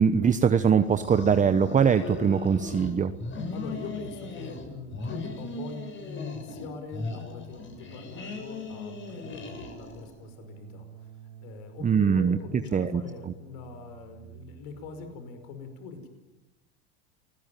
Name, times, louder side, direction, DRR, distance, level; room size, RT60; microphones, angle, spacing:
voice 1, 0.0-3.1 11.8-12.4 12.7-13.0, right 7 dB, 20° right, 10 dB, 1.1 m, -22 dB
sound 1, 0.6-15.2, right 9 dB, 75° right, 4.2 m, -51 dB
sound 2, 0.8-2.9 3.2-4.7 4.9-6.7 6.9-10.1, left 3 dB, 35° left, 7.7 m, -38 dB
voice 2, 3.5-11.1 11.4-16.1, left 4 dB, 70° left, 8 dB, 5.6 m, -42 dB
30.0 x 20.5 x 9.3 m, 1.1 s
supercardioid pair, 105°, 33 cm